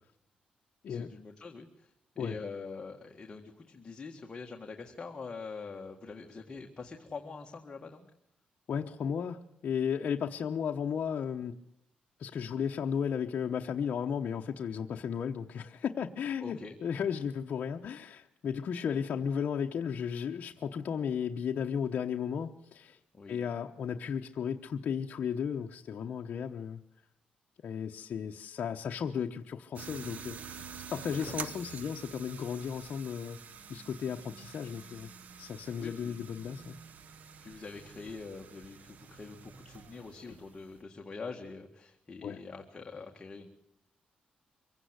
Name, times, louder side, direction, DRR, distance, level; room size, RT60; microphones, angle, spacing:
voice 1, 0.9-8.1 16.4-16.8 23.1-23.4 31.2-31.6 35.8-36.2 37.4-43.5, left 4 dB, 25° left, 2 dB, 1.8 m, -44 dB
voice 2, 8.7-11.5 12.2-23.0 23.3-26.8 27.6-33.4 33.7-35.1 35.4-36.8 42.2-42.4, left 7 dB, 55° left, 2 dB, 1.0 m, -34 dB
sound 1, 29.8-40.8, right 6 dB, 55° right, 1.1 m, -47 dB
24.5 x 17.0 x 8.1 m, 0.80 s
wide cardioid pair, 150°, 3 cm